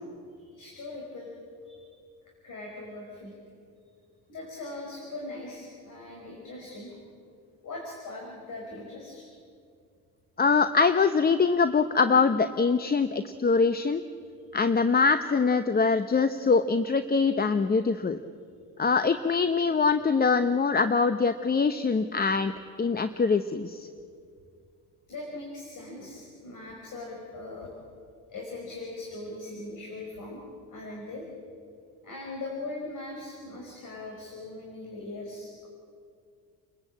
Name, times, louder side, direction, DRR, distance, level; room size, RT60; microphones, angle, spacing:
voice 1, 0.4-1.3 1.6-1.9 2.4-3.3 4.3-7.0 7.6-9.3 25.1-27.7 28.3-30.4 30.7-31.2 32.0-35.7, left 2 dB, 55° left, -1 dB, 5.2 m, -40 dB
voice 2, 10.4-14.0 14.5-18.2 18.8-22.5 22.8-23.9, left 4 dB, 25° left, 10 dB, 0.8 m, -23 dB
29.5 x 14.5 x 8.6 m, 2.3 s
supercardioid pair, 85°, 38 cm